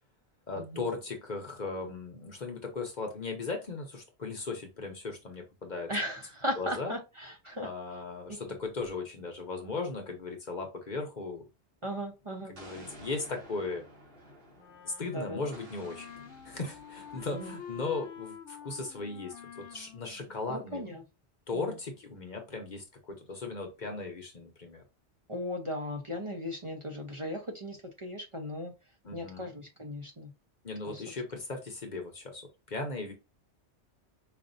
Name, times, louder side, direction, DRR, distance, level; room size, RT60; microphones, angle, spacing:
voice 1, 0.5-5.9 6.6-6.9 7.6-11.4 12.5-13.8 14.8-16.1 16.4-20.8 21.5-24.8 29.0-29.5 30.6-33.1, left 3 dB, 45° left, 0.9 m, -37 dB
voice 2, 5.9-7.7 11.8-12.5 15.1-15.4 17.3-17.5 20.5-21.0 21.5-21.7 25.3-28.7 29.1-30.3 30.8-31.0, equal, 35° right, 0.7 m, -37 dB
Explosion, 12.6-15.0 15.5-18.1, right 1 dB, 55° right, 1.6 m, -52 dB
Wind instrument woodwind instrument, 14.6-21.2, left 8 dB, 80° left, 0.9 m, -48 dB
5.0 x 2.5 x 2.6 m
omnidirectional pair, 1.1 m